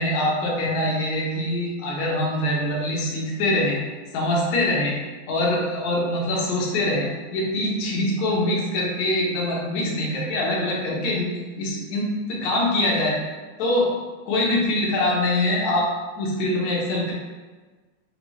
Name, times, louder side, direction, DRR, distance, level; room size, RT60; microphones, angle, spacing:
voice 1, 0.0-3.8 4.1-4.9 5.3-11.3 11.6-13.2 13.6-13.9 14.3-15.9 16.2-17.1, left 1 dB, 75° left, -3 dB, 2.2 m, -24 dB
6.5 x 2.3 x 3.0 m, 1.3 s
omnidirectional pair, 3.3 m